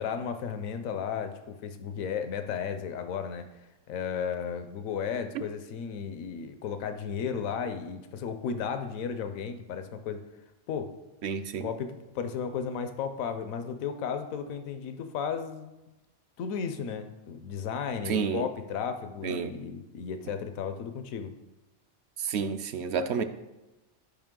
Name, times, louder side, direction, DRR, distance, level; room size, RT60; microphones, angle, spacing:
voice 1, 0.0-3.5 3.9-10.2 10.7-11.0 11.6-15.7 16.4-21.3, left 7 dB, 85° left, 8 dB, 1.1 m, -34 dB
voice 2, 11.2-11.7 18.1-18.5 19.2-19.5 22.2-23.2, right 6 dB, 65° right, 9 dB, 0.8 m, -30 dB
12.0 x 5.1 x 3.7 m, 1.0 s
omnidirectional pair, 1.4 m